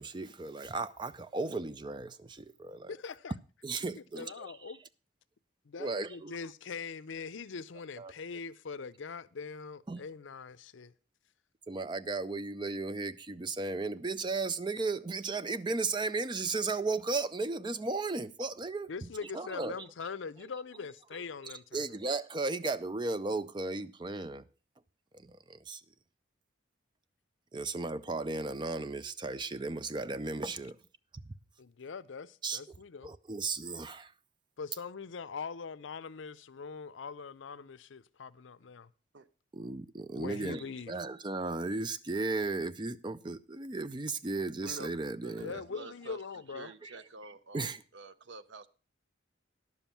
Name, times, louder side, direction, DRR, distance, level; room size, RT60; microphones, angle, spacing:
voice 1, 0.0-2.9 3.6-4.3 5.8-6.3 8.0-8.1 9.9-10.0 11.7-18.9 19.3-19.7 21.7-24.4 25.3-25.8 27.5-30.8 32.4-32.6 33.0-34.1 39.5-45.5 46.8-46.9 47.5-47.8, right 3 dB, 25° right, 0.4 m, -35 dB
voice 2, 2.9-3.3 3.8-4.8 5.6-10.9 18.9-22.0 31.6-33.1 34.6-38.9 40.2-41.0 45.4-46.7, left 5 dB, 75° left, 0.5 m, -42 dB
voice 3, 44.6-46.2 46.5-48.7, right 3 dB, 65° right, 0.7 m, -48 dB
11.0 x 7.2 x 5.8 m
head